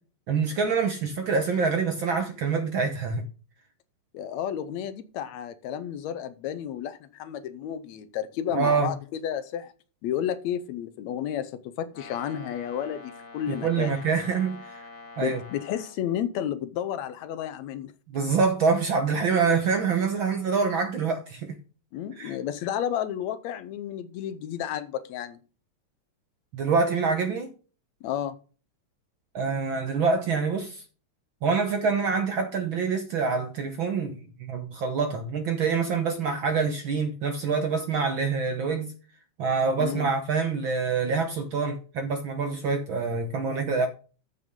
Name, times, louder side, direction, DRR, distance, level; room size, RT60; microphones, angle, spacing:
voice 1, 0.3-3.2 8.5-8.9 13.5-14.9 15.2-15.4 18.1-21.6 22.2-22.4 26.5-27.5 29.3-30.8 31.4-38.9 39.4-43.9, right 5 dB, 60° right, 1.3 m, -26 dB
voice 2, 4.1-9.7 10.0-13.9 15.2-17.9 21.9-25.4 28.0-28.4 39.8-40.1, left 10 dB, 75° left, 1.9 m, -32 dB
Brass instrument, 11.9-16.0, left 3 dB, 40° left, 2.1 m, -45 dB
13.5 x 6.1 x 3.7 m
omnidirectional pair, 3.3 m